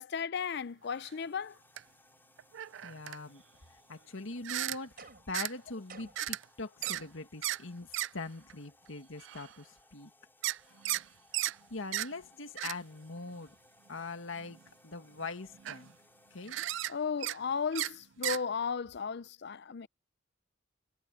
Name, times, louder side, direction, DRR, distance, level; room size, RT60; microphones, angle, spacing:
voice 1, 0.0-1.6 16.9-19.9, left 6 dB, 55° left, 0.5 m, -35 dB
sound 1, 0.8-18.5, left 2 dB, 10° left, 4.3 m, -65 dB
sound 2, 1.0-1.1 1.8-1.9 2.4-3.2 4.4-4.8 5.3-5.5 6.2-6.4 6.8-7.0 7.4-7.6 7.9-8.1 8.5-8.6 9.2-9.5 10.4-11.0 11.3-11.6 11.9-12.1 12.6-12.7 13.4-13.5 14.4-14.6 15.2-15.3 15.5-15.9 16.5-16.9 17.2-17.4 17.7-17.9 18.2-18.4, right 14 dB, 65° right, 0.4 m, -35 dB
voice 2, 2.8-3.4 3.9-10.1 11.7-13.5 13.9-15.9 16.3-16.6, left 3 dB, 75° left, 1.9 m, -42 dB
sound 3, 5.0-5.4 5.9-6.3 6.8-7.3, right 5 dB, 50° right, 4.4 m, -52 dB
head